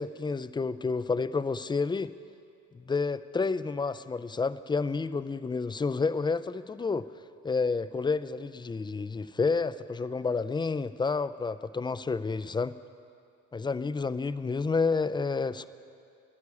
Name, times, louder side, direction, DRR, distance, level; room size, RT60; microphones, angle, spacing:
voice 1, 0.0-2.1 2.7-7.1 7.4-12.7 13.5-15.7, left 4 dB, 15° left, 13 dB, 0.4 m, -30 dB
10.5 x 9.7 x 8.3 m, 2.4 s
supercardioid pair, 65°, 33 cm